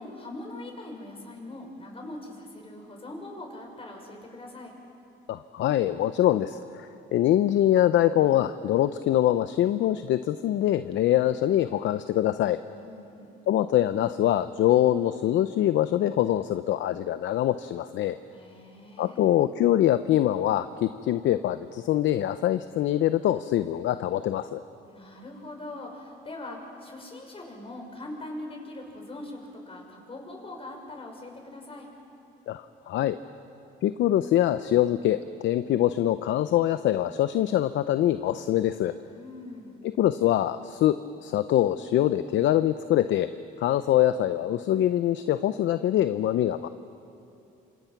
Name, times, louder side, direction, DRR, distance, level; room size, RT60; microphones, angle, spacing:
voice 1, 0.0-4.7 12.7-13.3 18.3-19.3 24.9-29.4 29.7-31.9 39.1-39.9, left 2 dB, 30° left, 1 dB, 6.2 m, -41 dB
voice 2, 5.3-12.6 13.5-18.2 19.0-24.6 32.5-33.2 33.8-38.9 40.0-43.3 43.6-46.7, left 12 dB, 70° left, 12 dB, 0.7 m, -24 dB
27.5 x 26.0 x 6.0 m, 2.8 s
cardioid pair, 85°, 20 cm